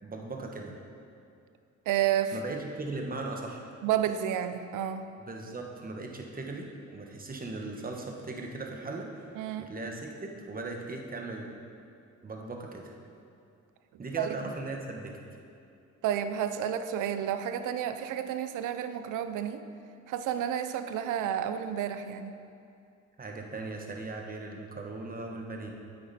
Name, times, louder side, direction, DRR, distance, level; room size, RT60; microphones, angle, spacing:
voice 1, 0.0-0.7 2.3-3.7 5.2-9.3 9.6-11.5 12.2-12.9 14.0-15.2 23.2-25.7, right 3 dB, 30° right, 1 dB, 1.4 m, -38 dB
voice 2, 1.9-2.4 3.8-5.1 9.4-9.7 14.2-14.5 16.0-19.6 20.1-22.4, right 10 dB, 85° right, 10 dB, 0.6 m, -31 dB
9.6 x 8.4 x 4.3 m, 2.6 s
cardioid pair, 90°, 30 cm